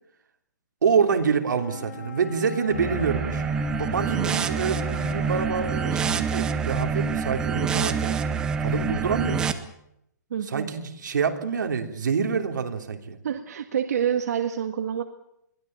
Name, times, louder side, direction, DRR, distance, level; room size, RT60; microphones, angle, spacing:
voice 1, 0.8-3.4 3.7-8.2 8.6-9.5 10.5-13.2, right 6 dB, 85° right, 4 dB, 3.1 m, -26 dB
Wind instrument woodwind instrument, 1.5-6.0, left 6 dB, 65° left, 3.6 m, -42 dB
sound 1, 2.7-9.5, right 6 dB, 10° right, 0.8 m, -27 dB
voice 2, 4.1-4.5 10.3-10.7 13.2-15.0, right 8 dB, 60° right, 5 dB, 1.7 m, -28 dB
22.0 x 16.0 x 8.9 m, 0.78 s
hypercardioid pair, 175°, 10 cm